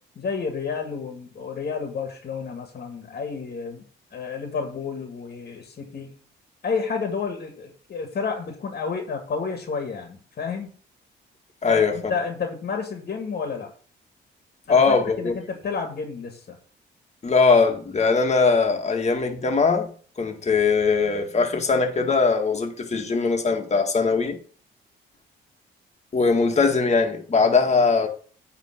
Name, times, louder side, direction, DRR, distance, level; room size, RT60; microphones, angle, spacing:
voice 1, 0.2-3.8 4.1-6.2 6.6-10.7 11.7-13.7 14.7-16.6, left 5 dB, 50° left, 1.9 m, -30 dB
voice 2, 11.6-12.1 14.7-15.4 17.2-19.9 20.2-24.4 26.1-28.1, left 4 dB, 35° left, 1.8 m, -20 dB
9.3 x 3.7 x 6.7 m
cardioid pair, 90°, 20 cm